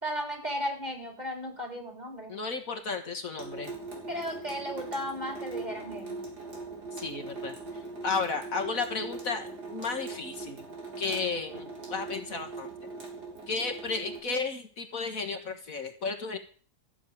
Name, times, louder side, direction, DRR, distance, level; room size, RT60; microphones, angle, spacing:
voice 1, 0.0-2.3 4.1-6.2, equal, 25° right, 3 dB, 3.9 m, -35 dB
voice 2, 2.3-3.7 7.0-7.5 8.0-10.6 11.0-12.7 13.5-16.4, left 4 dB, 60° left, 5 dB, 2.0 m, -33 dB
Water tap faucet / Sink (filling or washing) / Drip, 3.4-14.2, right 3 dB, 85° right, 4.1 m, -41 dB
14.5 x 7.1 x 9.3 m, 0.43 s
omnidirectional pair, 1.7 m